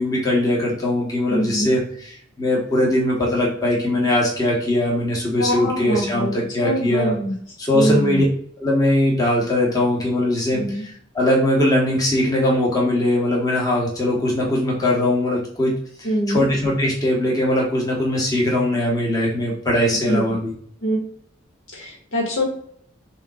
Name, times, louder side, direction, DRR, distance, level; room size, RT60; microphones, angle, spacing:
voice 1, 0.0-7.1 7.6-8.2 8.6-15.7 16.0-20.5, left 1 dB, 20° left, -3 dB, 1.1 m, -20 dB
voice 2, 1.3-1.7 5.4-6.3 6.6-7.3 7.7-8.2 10.5-10.8 16.0-16.5 19.9-20.3 20.8-21.0 21.7-22.4, equal, 85° left, -2 dB, 1.7 m, -23 dB
6.6 x 2.8 x 2.4 m, 0.62 s
head